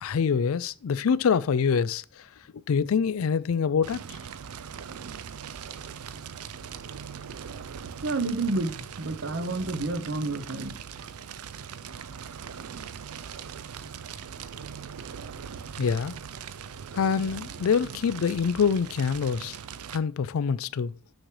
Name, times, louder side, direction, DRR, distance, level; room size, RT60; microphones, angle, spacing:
voice 1, 0.0-2.0 2.7-4.2 15.8-16.2 16.9-19.6 19.9-20.9, left 6 dB, 70° left, 0.4 m, -25 dB
Fire, 3.8-20.0, right 7 dB, 90° right, 0.5 m, -40 dB
voice 2, 8.0-10.8, right 2 dB, 55° right, 0.8 m, -29 dB
6.4 x 5.9 x 3.2 m
head